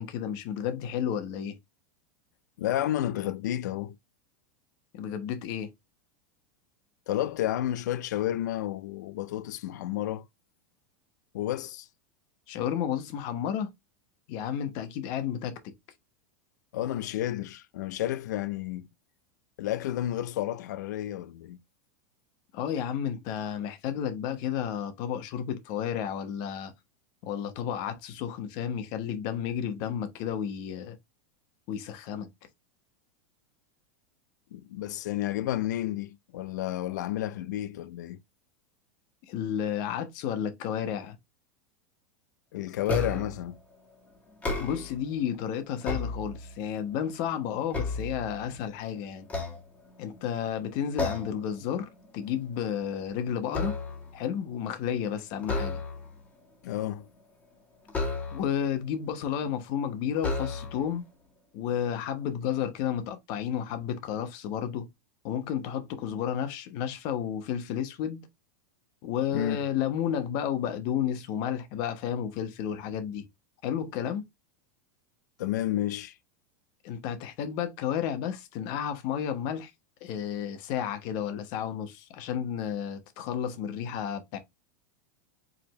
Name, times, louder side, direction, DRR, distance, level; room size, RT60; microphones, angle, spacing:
voice 1, 0.0-1.6 4.9-5.7 12.5-13.7 14.3-15.7 22.5-26.7 27.2-31.0 31.7-32.3 39.3-41.2 44.6-49.3 50.0-53.8 54.1-55.8 58.3-61.1 61.5-64.9 65.2-68.3 69.0-73.2 73.6-74.2 76.8-79.7 80.0-84.4, left 9 dB, 50° left, 1.0 m, -32 dB
voice 2, 2.6-4.0 7.1-10.3 11.3-11.9 16.7-18.9 19.6-21.6 34.5-38.2 42.5-43.6 56.6-57.1 69.3-69.6 75.4-76.2, left 13 dB, 80° left, 0.4 m, -31 dB
sound 1, 42.9-43.4 44.3-45.1 45.6-46.7 47.2-48.7 49.2-50.2 51.0-51.5 51.8-52.1 52.5-54.2 55.4-56.2 57.9-58.7 59.4-59.5 60.2-60.9, left 3 dB, 15° left, 1.3 m, -33 dB
5.0 x 2.6 x 3.1 m
supercardioid pair, 150°, 9 cm